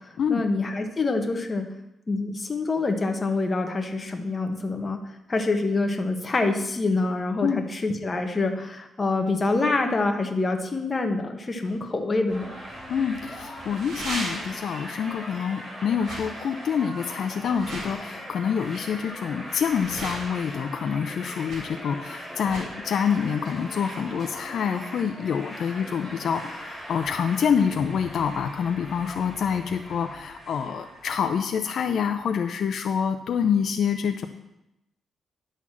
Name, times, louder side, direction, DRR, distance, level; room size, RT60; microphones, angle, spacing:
voice 1, 0.3-1.6 2.1-5.0 5.3-12.5, left 3 dB, 25° left, 5 dB, 1.1 m, -26 dB
sound 1, 11.7-11.8 13.6-14.7 16.0-16.2 17.4-18.0 19.6-20.5 21.5-21.6 22.4-22.7, right 1 dB, 60° right, 3.4 m, -36 dB
sound 2, 12.3-31.4, equal, 15° right, 3.6 m, -40 dB
voice 2, 12.9-34.3, left 7 dB, 65° left, 7 dB, 0.5 m, -26 dB
10.5 x 4.1 x 7.4 m, 0.89 s
cardioid pair, 115°, 0 cm